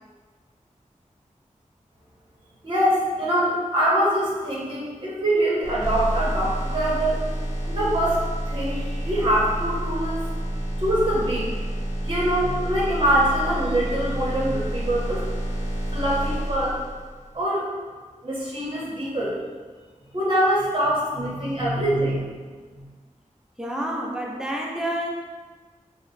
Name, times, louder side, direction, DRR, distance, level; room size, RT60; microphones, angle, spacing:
voice 1, 2.6-7.2 7.7-10.2 10.8-11.6 12.0-15.2 15.9-16.8 17.3-17.7 18.2-19.3 20.1-22.4 22.8-22.9, right 1 dB, 40° right, -5 dB, 1.0 m, -24 dB
sound 1, 5.6-17.3, right 1 dB, 25° left, 1.2 m, -29 dB
voice 2, 23.6-25.1, right 1 dB, 5° right, -2 dB, 0.6 m, -29 dB
2.9 x 2.1 x 4.0 m, 1.4 s
wide cardioid pair, 50°, 14 cm